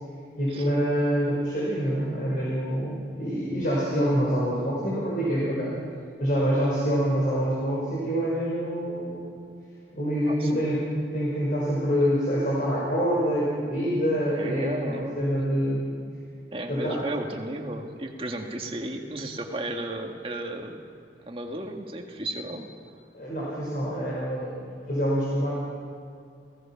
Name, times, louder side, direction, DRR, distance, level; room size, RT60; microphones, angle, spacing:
voice 1, 0.3-5.8 6.2-9.3 9.9-10.8 11.1-15.8 16.7-17.0 23.1-25.6, equal, 50° left, -6 dB, 5.0 m, -26 dB
voice 2, 10.3-10.7 14.4-15.3 16.5-20.8 21.3-22.7, right 1 dB, 30° right, 2 dB, 1.9 m, -34 dB
29.0 x 17.0 x 5.8 m, 2.3 s
head